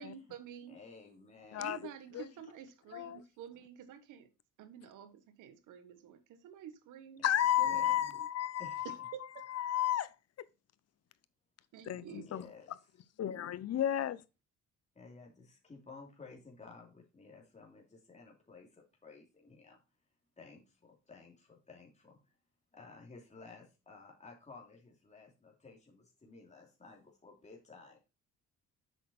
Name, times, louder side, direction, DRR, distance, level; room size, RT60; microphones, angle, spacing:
voice 1, 0.0-0.8 1.6-4.3 4.6-7.2 7.6-8.3 8.8-9.3 11.7-12.3, right 9 dB, 90° right, 1.3 m, -49 dB
voice 2, 0.7-1.8 7.2-7.3 7.6-8.1 8.6-8.9 12.1-12.7 14.9-19.8 20.4-22.2 22.7-28.0, left 4 dB, 25° left, 2.8 m, -54 dB
voice 3, 7.2-9.1 9.5-10.1 11.8-12.5 13.2-14.2, left 11 dB, 55° left, 0.7 m, -32 dB
8.0 x 5.9 x 4.3 m
cardioid pair, 90°, 30 cm